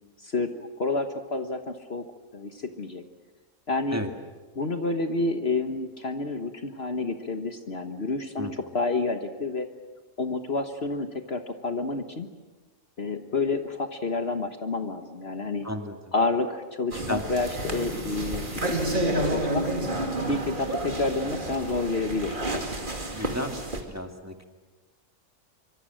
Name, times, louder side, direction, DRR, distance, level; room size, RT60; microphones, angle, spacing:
voice 1, 0.2-2.1 2.3-3.0 3.7-4.0 4.5-9.7 10.2-12.3 13.0-15.7 16.1-19.6 20.3-22.4, left 3 dB, 50° left, 7 dB, 1.5 m, -29 dB
voice 2, 15.6-15.9 17.1-17.2 23.1-23.6 23.9-24.3, left 1 dB, 10° right, 4 dB, 1.9 m, -33 dB
sound 1, 16.9-23.8, right 1 dB, 35° right, 2.6 m, -30 dB
25.0 x 25.0 x 7.7 m, 1.3 s
omnidirectional pair, 1.4 m